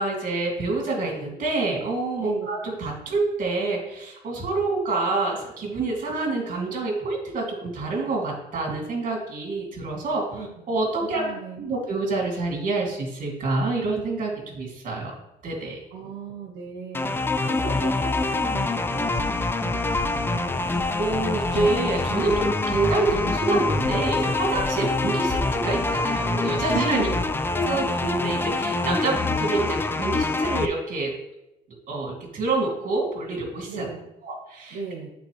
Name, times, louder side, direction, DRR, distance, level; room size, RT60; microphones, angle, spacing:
voice 1, 0.0-10.4 10.7-11.3 11.6-15.1 15.4-15.8 21.0-27.1 27.7-31.1 31.9-33.9 34.2-34.8, right 3 dB, 50° right, -1 dB, 2.3 m, -27 dB
voice 2, 11.0-11.6 15.9-17.2 17.5-20.6 24.7-24.8 26.9-27.4 33.7-34.1 34.7-35.1, right 4 dB, 90° right, -1 dB, 1.1 m, -37 dB
sound 1, 16.9-30.7, left 3 dB, 15° left, 0.3 m, -25 dB
sound 2, 19.1-19.7 19.9-20.5 20.7-20.8 21.2-21.6 21.9-22.4 22.7-23.2 23.5-24.0 24.2-24.7 25.0-25.5, left 6 dB, 45° left, 0.8 m, -36 dB
8.6 x 4.1 x 3.1 m, 0.90 s
cardioid pair, 110°, 17 cm